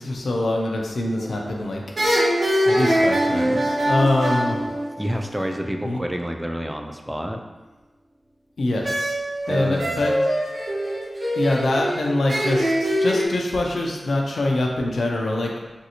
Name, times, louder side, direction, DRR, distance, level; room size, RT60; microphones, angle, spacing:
voice 1, 0.0-1.8 2.7-4.6 5.8-6.0 8.6-9.2 9.5-10.1 11.3-15.5, left 2 dB, 85° left, -1 dB, 0.4 m, -24 dB
sound 1, 1.2-1.6 2.0-5.6 8.8-13.3, equal, 65° right, 0.8 m, -23 dB
voice 2, 5.0-7.4 9.5-10.1, equal, 10° right, 3 dB, 0.3 m, -29 dB
3.1 x 2.6 x 2.8 m, 1.2 s
wide cardioid pair, 60°, 0 cm